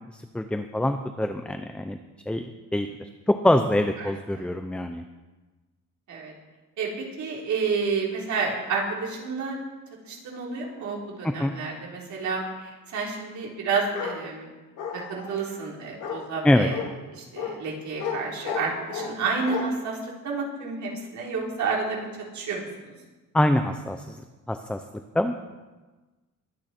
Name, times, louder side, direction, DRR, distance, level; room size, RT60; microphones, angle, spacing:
voice 1, 0.1-2.0 2.3-5.0 11.2-11.5 16.4-16.7 23.3-24.2 24.5-24.8 25.1-25.4, left 1 dB, 5° left, 7 dB, 0.5 m, -25 dB
voice 2, 6.8-9.6 10.0-12.4 12.9-14.5 14.9-16.7 17.3-20.0 20.2-22.1 22.3-22.6, right 4 dB, 60° right, -2 dB, 3.7 m, -30 dB
Bark, 13.9-14.2 14.8-15.3 16.0-16.2 16.7-16.9 17.4-17.5 18.0-18.2 18.4-19.1 19.5-19.6, left 7 dB, 80° left, 2.5 m, -31 dB
22.5 x 9.1 x 4.4 m, 1.2 s
cardioid pair, 145°, 32 cm